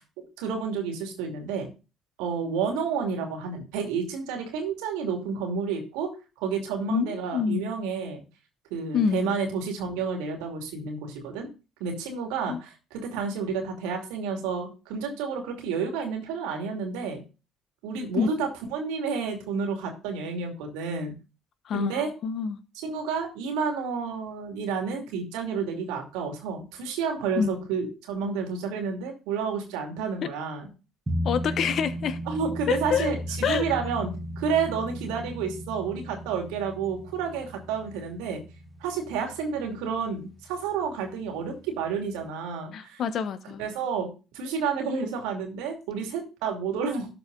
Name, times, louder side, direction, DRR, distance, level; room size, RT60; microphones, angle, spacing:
voice 1, 0.4-1.7 2.2-6.1 6.4-8.2 8.7-11.5 11.8-17.2 17.8-21.1 21.7-22.1 22.8-30.7 32.3-38.4 38.8-43.0 43.6-44.1 44.3-47.1, right 5 dB, 80° right, 3 dB, 2.5 m, -30 dB
voice 2, 6.9-7.7 8.9-9.4 12.5-12.6 18.2-18.3 21.7-22.6 27.4-27.5 30.2-30.3 31.2-32.2 32.7-33.1 33.4-33.7 42.7-43.6, left 7 dB, 60° left, 12 dB, 1.0 m, -27 dB
sound 1, 31.1-40.2 40.5-40.6, equal, 20° right, 1.4 m, -35 dB
12.5 x 4.7 x 3.9 m, 0.31 s
hypercardioid pair, 55°, 0 cm